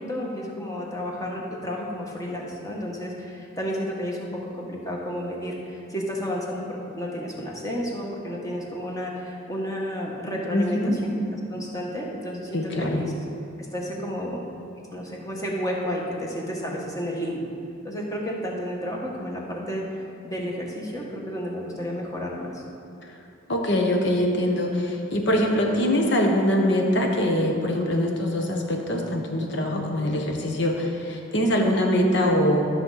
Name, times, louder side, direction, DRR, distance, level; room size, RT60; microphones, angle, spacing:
voice 1, 0.0-13.1 13.6-14.4 14.9-17.5 17.8-22.6, equal, 15° left, -2 dB, 1.4 m, -31 dB
voice 2, 10.5-10.9 12.5-13.0 23.5-32.7, left 1 dB, 60° left, 1 dB, 1.2 m, -23 dB
13.0 x 6.2 x 4.1 m, 2.6 s
head